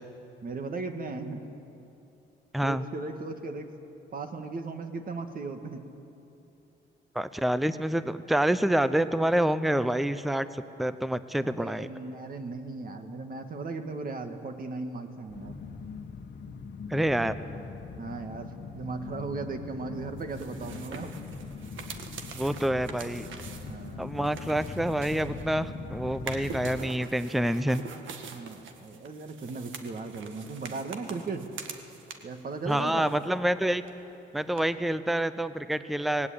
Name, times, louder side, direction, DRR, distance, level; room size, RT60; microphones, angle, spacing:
voice 1, 0.4-1.4 2.6-3.7 4.1-5.8 11.4-15.5 18.0-21.1 23.5-24.1 28.3-31.5 32.2-33.1, right 3 dB, 45° right, 6 dB, 1.9 m, -37 dB
voice 2, 2.5-2.8 7.1-11.9 16.9-17.4 22.3-23.3 24.0-27.8 32.7-33.8 34.3-36.3, right 1 dB, ahead, 13 dB, 0.7 m, -27 dB
sound 1, 15.3-26.8, left 5 dB, 60° left, 1.4 m, -41 dB
sound 2, 20.2-25.7 26.1-32.4 32.7-33.6 33.8-33.9 34.6-34.7, right 6 dB, 75° right, 1.7 m, -44 dB
18.5 x 17.5 x 8.8 m, 2.8 s
cardioid pair, 90°, 20 cm